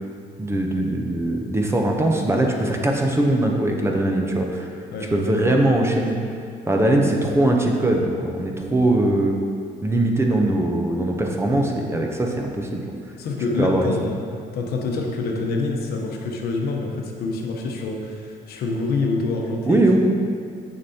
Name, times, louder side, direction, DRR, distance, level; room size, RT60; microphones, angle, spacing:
voice 1, 0.4-4.7 5.1-6.2 6.7-9.4 9.8-12.9 13.6-13.9 19.7-20.0, right 1 dB, 15° right, 1 dB, 0.7 m, -21 dB
voice 2, 4.9-5.2 13.2-14.2 14.5-20.0, left 3 dB, 70° left, 1 dB, 0.9 m, -26 dB
6.9 x 6.4 x 2.8 m, 2.2 s
cardioid pair, 110°, 17 cm